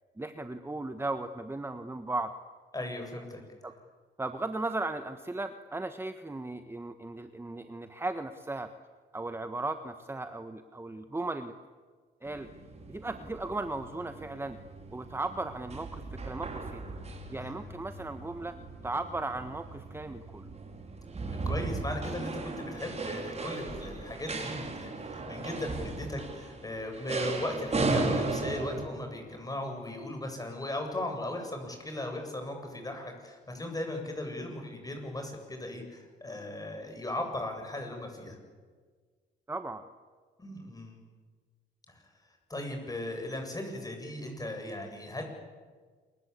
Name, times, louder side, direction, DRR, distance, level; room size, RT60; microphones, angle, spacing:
voice 1, 0.2-2.3 3.6-3.7 4.2-8.7 9.1-11.5 12.2-12.5 12.9-14.6 14.9-16.8 17.3-18.5 18.8-20.5 39.5-39.8, right 2 dB, 10° right, 9 dB, 1.3 m, -36 dB
voice 2, 2.7-3.4 17.4-17.5 21.3-38.4 40.4-41.0 41.9-42.0 42.5-45.2, left 1 dB, 20° left, 4 dB, 7.8 m, -37 dB
sound 1, 12.3-28.9, right 3 dB, 35° right, 4.8 m, -36 dB
28.0 x 23.0 x 8.4 m, 1.5 s
cardioid pair, 90°, 20 cm